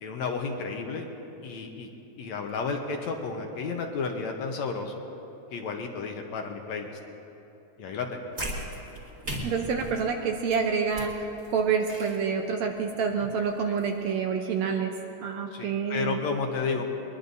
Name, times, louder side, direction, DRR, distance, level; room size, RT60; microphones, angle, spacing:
voice 1, 0.0-1.1 1.4-1.9 2.2-5.0 5.5-6.9 7.8-8.2 13.7-13.8 15.5-16.9, left 4 dB, 70° left, 3 dB, 2.1 m, -32 dB
sound 1, 8.3-14.2, right 1 dB, 25° right, 2.4 m, -40 dB
voice 2, 9.4-14.9 15.2-16.2, right 6 dB, 75° right, 3 dB, 1.8 m, -28 dB
21.5 x 21.5 x 2.7 m, 2.9 s
omnidirectional pair, 3.7 m